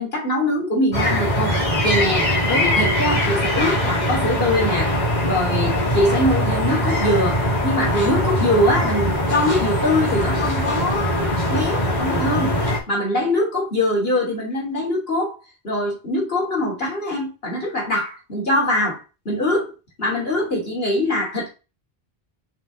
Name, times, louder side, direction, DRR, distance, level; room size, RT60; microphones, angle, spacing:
voice 1, 0.0-4.9 5.2-12.6 12.9-15.3 15.6-19.0 19.2-19.7 20.0-21.5, left 1 dB, 70° left, -3 dB, 3.3 m, -23 dB
sound 1, 0.9-12.8, equal, 45° left, 2.7 m, -21 dB
5.7 x 5.2 x 4.0 m, 0.30 s
omnidirectional pair, 1.0 m